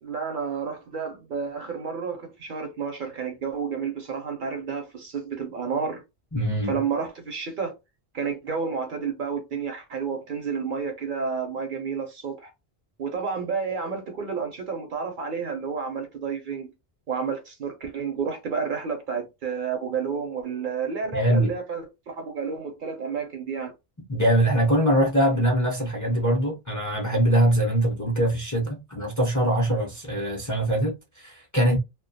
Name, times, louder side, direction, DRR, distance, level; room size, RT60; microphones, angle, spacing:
voice 1, 0.0-6.0 6.7-7.8 8.1-12.5 13.0-16.7 17.1-23.7, right 5 dB, 60° right, 0.7 m, -30 dB
voice 2, 6.3-6.8 21.1-21.5 24.1-31.8, right 1 dB, 20° left, 0.5 m, -23 dB
2.2 x 2.1 x 2.6 m
omnidirectional pair, 1.1 m